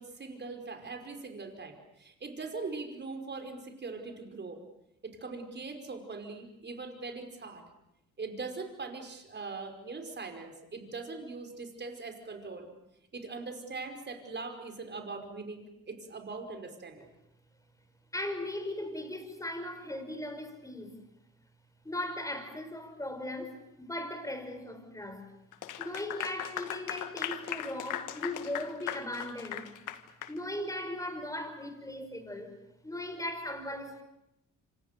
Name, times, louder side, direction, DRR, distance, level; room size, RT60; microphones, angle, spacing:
voice 1, 0.0-4.6 5.0-7.6 8.2-12.7 13.1-17.1, right 3 dB, 35° right, 5.4 m, -41 dB
voice 2, 18.1-20.9 21.8-25.2 25.8-29.7 30.3-32.6 32.8-34.0, left 1 dB, 10° left, 5.5 m, -38 dB
Clapping / Applause, 25.5-30.4, left 11 dB, 85° left, 1.7 m, -38 dB
28.0 x 26.0 x 6.9 m
cardioid pair, 90°, 30 cm